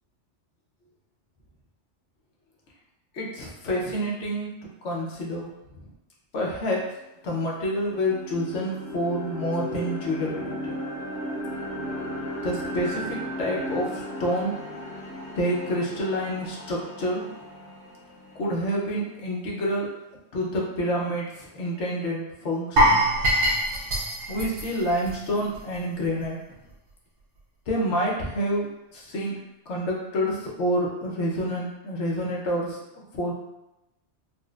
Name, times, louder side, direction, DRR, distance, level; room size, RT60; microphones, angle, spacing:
voice 1, 3.1-4.6 4.8-5.5 6.3-6.9 7.2-10.8 12.4-14.6 15.4-17.3 18.3-19.9 20.3-23.0 24.3-26.4 27.7-33.3, equal, 75° left, -3 dB, 1.1 m, -28 dB
sound 1, 6.8-6.9 7.3-19.3, equal, 80° right, 1.2 m, -36 dB
sound 2, 22.8-25.8 26.0-26.2 26.7-26.8, equal, 50° right, 0.8 m, -23 dB
4.0 x 2.1 x 2.3 m, 0.93 s
omnidirectional pair, 1.2 m